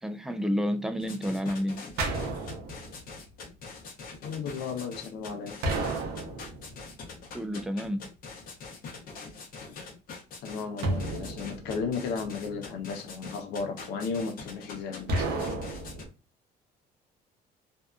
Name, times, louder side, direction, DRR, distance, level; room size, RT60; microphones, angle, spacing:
voice 1, 0.0-2.0 7.3-8.1, equal, 5° right, 0.3 m, -30 dB
sound 1, 1.0-16.0, left 4 dB, 55° left, 0.8 m, -44 dB
sound 2, 2.0-3.2 5.6-6.9 10.8-12.2 15.1-16.1, right 2 dB, 75° right, 0.7 m, -32 dB
voice 2, 4.2-5.6 10.4-15.6, left 5 dB, 85° left, 0.7 m, -34 dB
2.7 x 2.2 x 2.3 m
cardioid pair, 110°, 17 cm